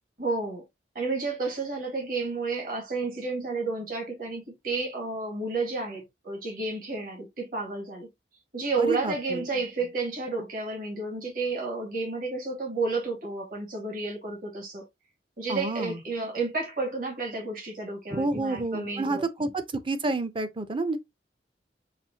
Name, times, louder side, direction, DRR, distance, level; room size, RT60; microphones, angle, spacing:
voice 1, 0.2-0.6 1.0-8.1 8.5-14.8 15.4-19.5, right 3 dB, 55° right, 1.8 m, -31 dB
voice 2, 8.8-9.4 15.5-16.0 18.1-21.0, right 2 dB, 30° right, 0.6 m, -29 dB
5.9 x 2.7 x 2.8 m
head